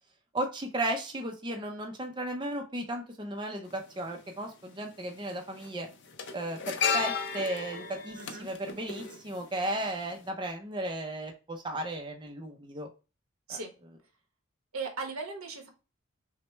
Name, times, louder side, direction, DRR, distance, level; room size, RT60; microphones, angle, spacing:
voice 1, 0.3-5.9 6.3-12.9 13.5-13.6, right 1 dB, 20° right, 3 dB, 0.5 m, -35 dB
sound 1, 3.7-3.8 5.0-5.3 5.5-9.8 10.1-10.3, left 6 dB, 55° left, 0.6 m, -34 dB
voice 2, 8.2-8.5 13.5-13.7 14.7-15.7, right 4 dB, 85° right, 3 dB, 1.1 m, -37 dB
5.9 x 2.2 x 3.2 m, 0.31 s
head